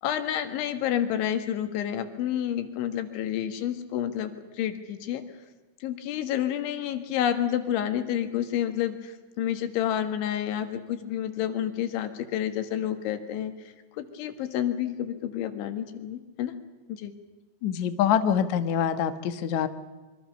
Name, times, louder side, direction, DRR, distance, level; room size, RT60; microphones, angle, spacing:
voice 1, 0.0-5.2 5.8-13.5 14.0-16.5 16.9-17.1, left 10 dB, 85° left, 9 dB, 4.1 m, -29 dB
voice 2, 17.6-19.7, left 9 dB, 70° left, 10 dB, 1.8 m, -25 dB
26.0 x 24.0 x 6.7 m, 1.3 s
omnidirectional pair, 5.3 m